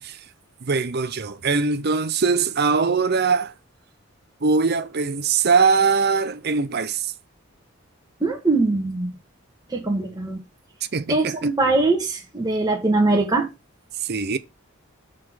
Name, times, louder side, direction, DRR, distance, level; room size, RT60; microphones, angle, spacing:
voice 1, 0.6-3.5 4.4-7.1 10.9-11.4 14.0-14.4, right 5 dB, 50° right, 0.7 m, -21 dB
voice 2, 8.2-9.1 9.7-10.4 11.1-13.5, right 2 dB, 20° right, 1.3 m, -21 dB
6.7 x 3.7 x 6.2 m
head